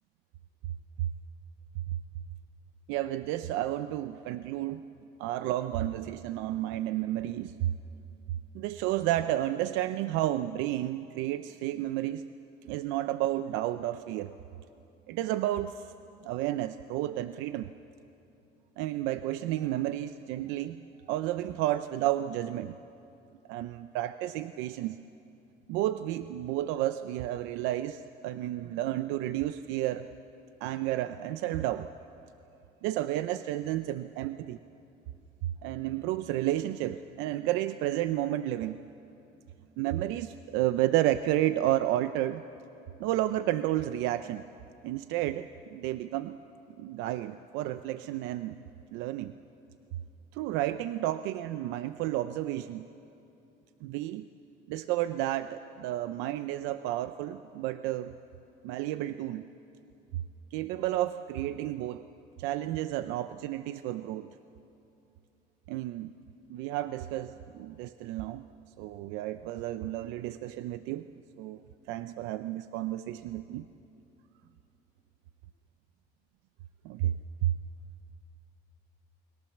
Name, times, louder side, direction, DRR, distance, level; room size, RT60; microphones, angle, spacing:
voice 1, 2.9-4.8 5.2-7.7 8.3-12.2 12.6-14.3 15.1-15.9 16.2-17.7 18.8-20.8 21.1-22.8 23.5-25.0 25.7-30.1 30.6-31.9 32.8-34.6 35.6-38.8 39.8-42.4 43.0-44.4 44.8-46.4 46.8-48.6 48.9-49.3 50.3-52.9 53.8-54.3 54.7-58.1 58.6-59.5 60.1-60.2 60.5-62.1 62.4-64.3 65.7-66.1 66.5-68.4 68.8-71.1 71.4-73.7 76.8-77.1 77.4-77.5, right 14 dB, 90° right, 11 dB, 0.7 m, -31 dB
29.5 x 21.5 x 7.3 m, 2.8 s
cardioid pair, 145°, 19 cm